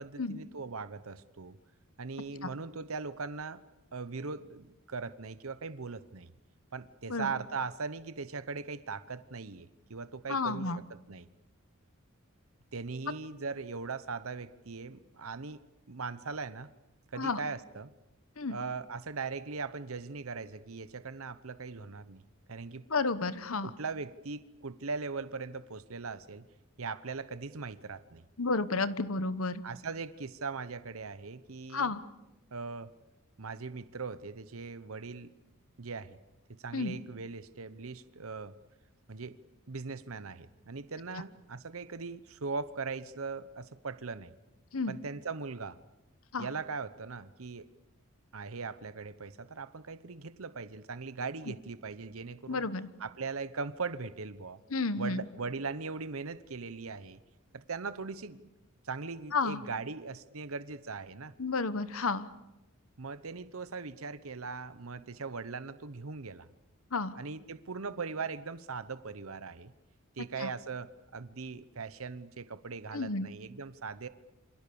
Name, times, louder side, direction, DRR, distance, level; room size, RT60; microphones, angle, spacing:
voice 1, 0.0-1.6 2.0-3.6 3.9-6.3 6.7-11.3 12.7-15.6 15.9-16.7 17.1-17.9 18.5-22.2 22.5-22.9 23.6-26.4 26.8-28.2 29.6-32.0 32.5-32.9 33.4-35.3 35.8-36.2 36.5-38.5 39.1-39.4 39.7-44.3 44.9-45.8 46.4-47.7 48.3-52.7 53.0-54.6 55.0-57.2 57.5-58.5 58.8-61.3 63.0-66.5 67.1-69.7 70.2-74.1, right 4 dB, 75° right, 14 dB, 1.0 m, -40 dB
voice 2, 10.3-10.8 17.1-17.4 18.4-18.6 22.9-23.7 28.4-29.6 31.7-32.0 36.7-37.0 44.7-44.9 46.3-46.5 52.5-52.9 54.7-55.3 59.3-59.6 61.4-62.3 66.9-67.2 70.4-70.5 72.9-73.3, left 3 dB, 75° left, 14 dB, 1.2 m, -31 dB
28.0 x 26.0 x 7.0 m, 0.98 s
head